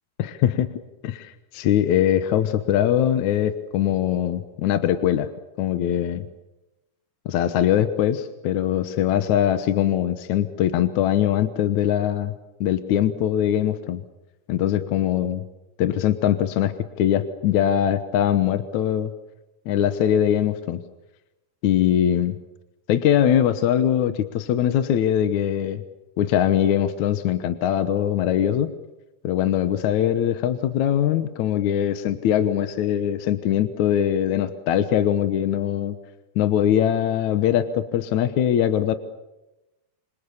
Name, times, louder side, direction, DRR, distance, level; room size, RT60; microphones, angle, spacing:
voice 1, 0.2-0.7 1.0-5.3 5.6-6.3 7.3-12.3 12.6-14.0 14.5-15.4 15.8-19.1 19.7-20.8 21.6-22.4 22.9-25.8 26.2-28.7 29.2-36.0 36.4-39.0, left 10 dB, 70° left, 10 dB, 2.4 m, -22 dB
27.5 x 26.0 x 7.1 m, 0.97 s
omnidirectional pair, 3.7 m